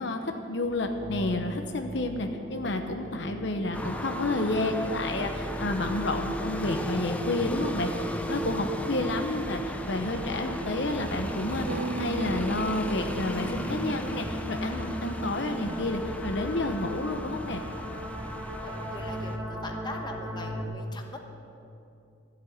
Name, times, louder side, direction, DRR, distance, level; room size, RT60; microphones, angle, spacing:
voice 1, 0.0-7.9 8.3-17.6, left 2 dB, 60° left, 5 dB, 0.9 m, -30 dB
sound 1, 0.7-20.6, right 1 dB, 10° right, 1.9 m, -38 dB
sound 2, 3.7-19.4, equal, 5° left, 0.7 m, -36 dB
sound 3, 11.7-15.4, right 2 dB, 70° right, 0.6 m, -38 dB
voice 2, 18.6-21.2, left 2 dB, 20° left, 3 dB, 1.2 m, -41 dB
13.5 x 8.3 x 10.0 m, 2.6 s
head